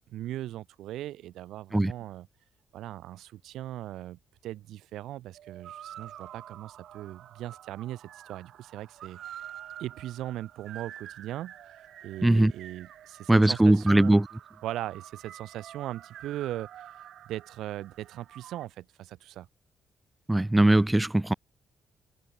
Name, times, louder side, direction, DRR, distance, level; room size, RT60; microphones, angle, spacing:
voice 1, 0.1-2.3 2.7-9.4 9.8-11.5 12.0-14.2 14.6-16.9 17.3-19.5, right 14 dB, 85° right, 2.4 m, -39 dB
sound 1, 5.3-18.7, right 11 dB, 70° right, 7.9 m, -48 dB
voice 2, 13.3-14.3 20.3-21.3, right 1 dB, 10° right, 0.5 m, -20 dB
cardioid pair, 120°, 0 cm